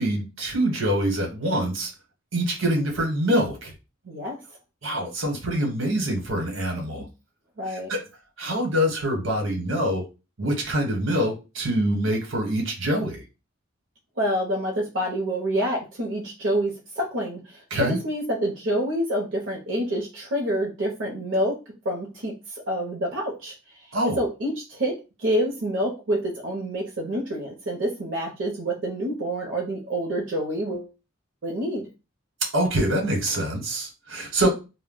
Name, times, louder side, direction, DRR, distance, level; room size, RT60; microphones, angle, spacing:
voice 1, 0.0-1.9 2.3-3.7 4.8-7.0 7.7-8.0 8.4-10.0 10.4-13.2 17.7-18.0 23.9-24.2 32.5-34.5, right 1 dB, 80° right, 2 dB, 1.0 m, -25 dB
voice 2, 4.1-4.4 7.0-7.1 7.6-7.9 14.2-17.4 17.8-21.6 21.8-23.5 24.2-24.9 25.2-30.9 31.4-31.8, equal, 65° right, -2 dB, 0.7 m, -27 dB
2.1 x 2.1 x 3.6 m, 0.29 s
head